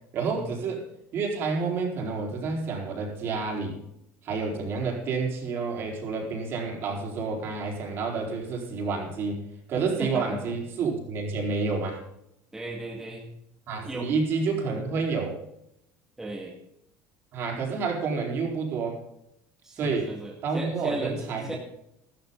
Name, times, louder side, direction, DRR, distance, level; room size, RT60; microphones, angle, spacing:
voice 1, 0.1-0.9 1.1-3.8 4.2-9.4 9.7-12.0 13.7-15.4 17.3-19.0 19.7-20.1 20.4-21.6, right 4 dB, 45° right, 0 dB, 4.4 m, -29 dB
voice 2, 10.0-10.5 12.5-13.3 13.8-14.1 16.2-16.6 19.6-21.5, right 1 dB, 10° right, -2 dB, 2.1 m, -36 dB
13.5 x 13.5 x 4.0 m, 0.76 s
cardioid pair, 150°, 6 cm